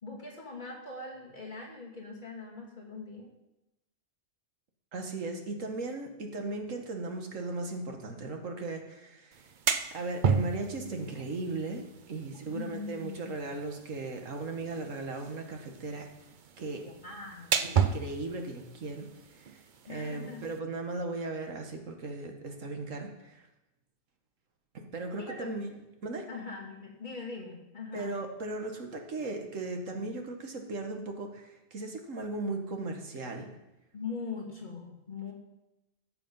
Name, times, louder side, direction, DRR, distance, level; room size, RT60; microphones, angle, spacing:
voice 1, 0.0-3.3 12.4-13.4 16.8-17.9 19.9-20.5 25.2-25.5 26.3-28.2 33.9-35.3, left 4 dB, 35° left, -3 dB, 2.6 m, -42 dB
voice 2, 4.9-9.5 9.9-16.1 16.6-16.9 17.6-19.1 19.3-19.6 19.9-23.5 24.7-25.8 26.0-26.3 27.9-33.5, right 2 dB, 75° right, 3 dB, 1.8 m, -37 dB
sound 1, 9.3-20.6, right 6 dB, 45° right, 0.7 m, -34 dB
14.0 x 6.9 x 5.4 m, 0.95 s
omnidirectional pair, 1.4 m